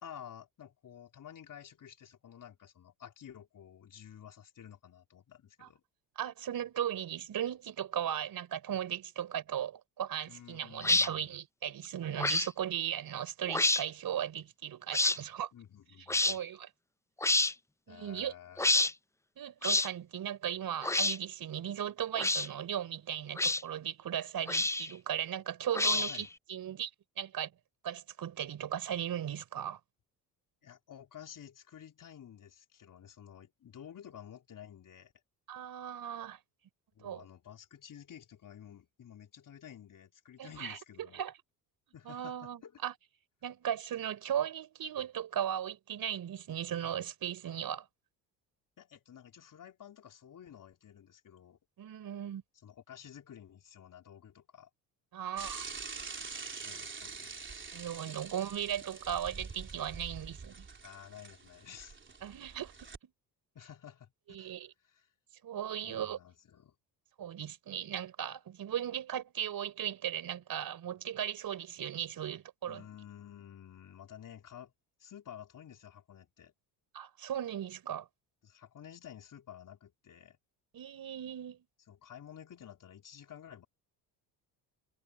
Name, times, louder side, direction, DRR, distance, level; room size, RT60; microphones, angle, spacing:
voice 1, 0.0-5.8 10.3-11.4 15.5-16.4 17.9-18.8 25.8-26.3 30.6-35.1 36.9-41.2 41.9-42.8 48.8-51.6 52.6-54.7 56.6-57.5 60.8-62.0 63.5-64.1 64.4-64.6 64.8-65.1 65.8-66.8 72.6-74.7 75.0-76.5 78.4-80.4 81.9-83.6, left 9 dB, 50° left, 4.0 m, -51 dB
voice 2, 6.2-15.5 16.3-16.7 17.9-18.3 19.4-26.9 27.2-27.5 27.8-29.8 35.5-36.4 37.0-37.2 40.4-40.8 41.1-41.3 42.0-42.9 43.4-47.8 51.8-52.4 55.1-55.6 57.7-60.7 62.2-62.7 64.3-64.7 65.4-66.2 67.2-72.8 76.9-78.1 80.7-81.6, right 10 dB, 55° right, 4.3 m, -37 dB
sound 1, 10.8-11.1 12.2-12.5 13.5-13.8 14.9-15.2 16.1-16.4 17.2-17.5 18.6-18.9 19.6-19.9 20.8-21.2 22.2-22.5 23.4-23.6 24.5-24.9 25.7-26.3, left 2 dB, 5° left, 0.7 m, -28 dB
Bicycle / Mechanisms, 55.4-63.0, right 4 dB, 25° right, 3.7 m, -45 dB
supercardioid pair, 75°, 42 cm